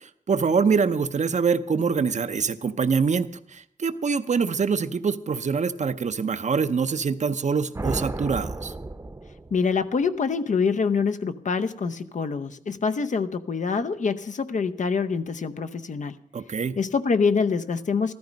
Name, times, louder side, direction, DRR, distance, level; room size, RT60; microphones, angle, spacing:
voice 1, 0.3-8.7 16.3-16.8, right 5 dB, 60° right, 11 dB, 0.7 m, -24 dB
sound 1, 7.7-9.9, right 2 dB, 20° right, 0.8 m, -32 dB
voice 2, 9.5-16.2 16.8-18.1, left 5 dB, 65° left, 9 dB, 0.8 m, -25 dB
14.5 x 13.0 x 5.2 m, 0.69 s
wide cardioid pair, 85°, 14 cm